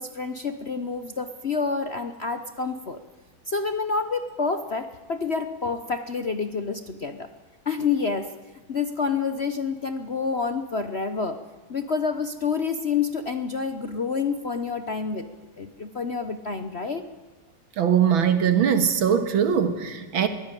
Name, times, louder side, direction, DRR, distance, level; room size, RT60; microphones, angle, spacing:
voice 1, 0.0-3.0 3.5-7.3 7.6-8.3 8.7-11.4 11.7-15.3 15.6-17.0, left 5 dB, 45° left, 9 dB, 0.9 m, -28 dB
voice 2, 17.8-20.3, right 8 dB, 75° right, 9 dB, 2.4 m, -21 dB
22.0 x 16.5 x 9.1 m, 1.2 s
omnidirectional pair, 2.2 m